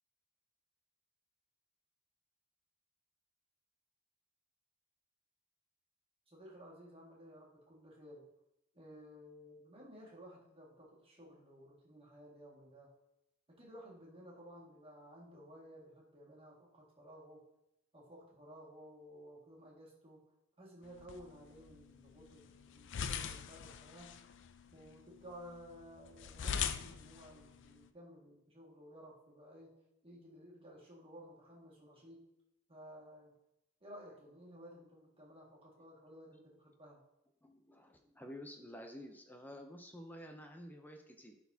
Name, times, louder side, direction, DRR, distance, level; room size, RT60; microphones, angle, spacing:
voice 1, 6.3-8.3 8.7-12.9 13.5-17.4 17.9-20.2 20.6-24.2 24.7-29.8 30.0-32.2 32.7-33.3 33.8-37.0, equal, 25° right, -4 dB, 1.8 m, -55 dB
sound 1, 20.8-27.9, left 7 dB, 55° left, 0.4 m, -43 dB
voice 2, 37.4-41.3, equal, 10° left, 3 dB, 0.5 m, -51 dB
11.5 x 4.1 x 2.7 m, 0.87 s
head